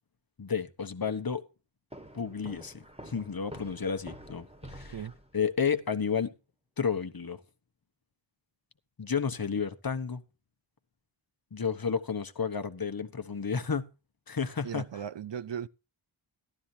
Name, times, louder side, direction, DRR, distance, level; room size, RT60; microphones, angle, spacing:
voice 1, 0.4-1.4 2.1-5.0 5.3-6.3 6.8-7.4 9.0-10.2 11.5-13.9 14.3-14.9, left 6 dB, 45° left, 1.0 m, -31 dB
sound 1, 1.9-5.6, right 1 dB, 10° right, 1.4 m, -48 dB
voice 2, 14.6-15.7, right 8 dB, 60° right, 0.6 m, -37 dB
14.5 x 12.0 x 2.7 m
wide cardioid pair, 50°, 50 cm